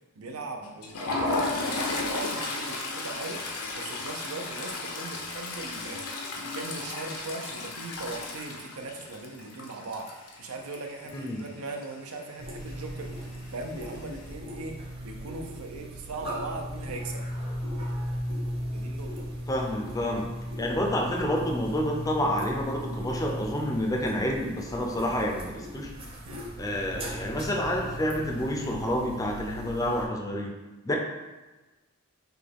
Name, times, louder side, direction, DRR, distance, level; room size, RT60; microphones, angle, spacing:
voice 1, 0.1-3.4 3.7-6.1 6.3-13.1 13.5-14.7 15.0-17.3 18.7-19.3 26.2-26.4 30.9-31.0, right 2 dB, 80° right, 3 dB, 0.6 m, -39 dB
Toilet flush, 0.6-11.4 11.7-11.9 12.2-12.4 13.3-13.9, left 3 dB, 80° left, 0.7 m, -34 dB
voice 2, 11.1-11.4 19.5-20.3 20.6-25.9 26.6-30.5 30.9-31.0, left 1 dB, 15° left, 1 dB, 0.4 m, -29 dB
sound 1, 12.4-30.1, equal, 25° right, 0.7 m, -37 dB
5.8 x 2.2 x 3.5 m, 1.2 s
head